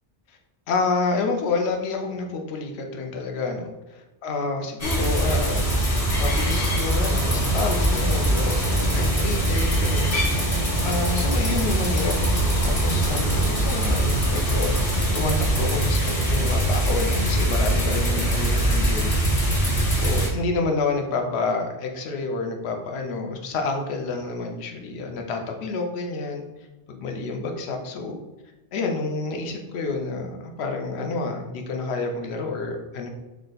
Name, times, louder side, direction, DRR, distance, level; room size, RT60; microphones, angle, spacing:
voice 1, 0.7-5.6 6.2-10.2 10.8-12.2 12.6-14.8 15.1-19.2 19.9-26.4 26.9-28.2 28.7-33.1, left 3 dB, 75° left, 3 dB, 0.9 m, -29 dB
sound 1, 4.8-20.3, right 1 dB, 35° left, 0.8 m, -22 dB
3.5 x 2.2 x 3.9 m, 1.1 s
omnidirectional pair, 1.1 m